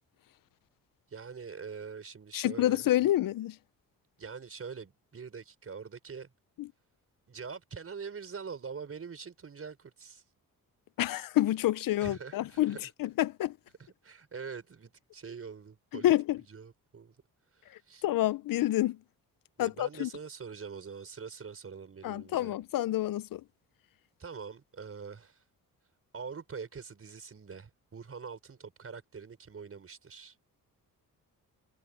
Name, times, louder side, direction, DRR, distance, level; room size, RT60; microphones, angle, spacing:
voice 1, 1.1-2.8 4.2-6.3 7.3-10.2 12.0-12.9 13.8-16.1 16.5-17.1 17.5-18.0 19.6-22.5 24.2-25.4 26.1-30.4, right 5 dB, 40° right, 5.5 m, -44 dB
voice 2, 2.3-3.6 6.6-6.7 11.0-13.5 16.0-16.4 18.0-19.0 19.6-20.1 22.0-23.4, left 14 dB, 70° left, 0.6 m, -28 dB
cardioid pair, 100°, 35 cm